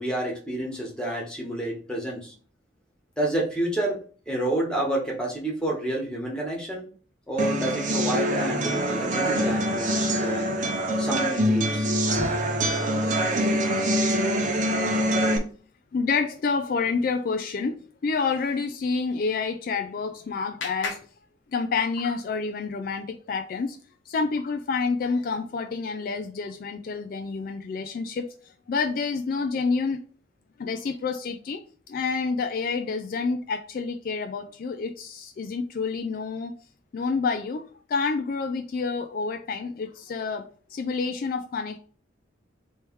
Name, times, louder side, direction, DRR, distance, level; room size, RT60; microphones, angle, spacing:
voice 1, 0.0-2.3 3.2-4.0 4.3-6.9 7.3-10.5 11.0-11.9 12.2-12.7, right 1 dB, 5° left, 1.3 m, -29 dB
sound 1, 7.4-15.4, equal, 45° right, 0.7 m, -24 dB
voice 2, 15.9-21.0 21.5-23.8 24.1-28.3 28.7-30.0 30.6-36.5 36.9-37.6 37.9-41.8, left 4 dB, 50° left, 0.3 m, -28 dB
Clapping, 19.5-22.1, left 4 dB, 75° left, 0.8 m, -40 dB
3.3 x 3.1 x 4.5 m
head